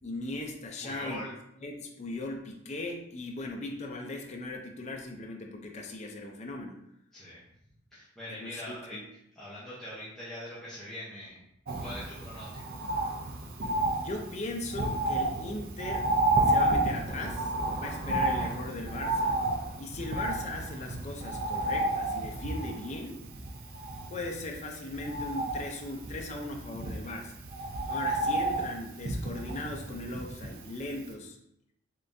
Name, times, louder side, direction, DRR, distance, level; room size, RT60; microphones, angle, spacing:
voice 1, 0.0-1.3 1.6-6.8 8.3-9.0 14.0-16.1 16.4-19.4 19.8-23.2 24.1-27.4 27.9-31.4, left 2 dB, 35° left, 2 dB, 0.5 m, -38 dB
voice 2, 0.8-1.3 7.1-7.5 7.9-9.0 9.3-11.4 11.8-12.8, left 1 dB, ahead, -11 dB, 0.8 m, -42 dB
Bird, 11.7-30.8 31.1-31.2, right 2 dB, 50° right, 0.5 m, -31 dB
3.6 x 3.3 x 2.6 m, 0.78 s
head